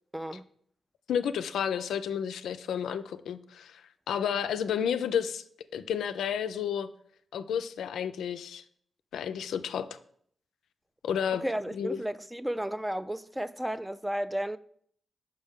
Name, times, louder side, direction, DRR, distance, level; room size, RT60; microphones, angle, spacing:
voice 1, 0.1-0.4 11.4-14.6, right 1 dB, 10° right, 0.3 m, -33 dB
voice 2, 1.1-5.4 5.7-6.9 7.3-8.6 9.1-10.0 11.0-11.4 11.7-12.0, left 8 dB, 85° left, 0.3 m, -31 dB
5.3 x 5.3 x 3.5 m
supercardioid pair, 50°, 0 cm